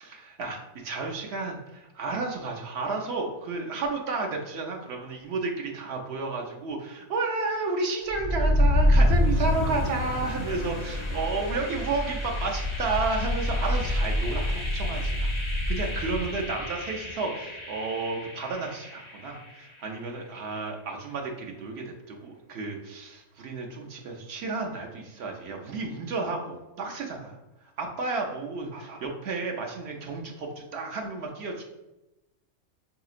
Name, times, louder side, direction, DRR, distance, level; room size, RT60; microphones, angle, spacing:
voice 1, 0.0-31.6, right 3 dB, 65° right, 1 dB, 0.8 m, -32 dB
sound 1, 8.1-20.0, left 1 dB, 45° left, 0.4 m, -27 dB
4.8 x 2.8 x 2.4 m, 0.98 s
omnidirectional pair, 1.3 m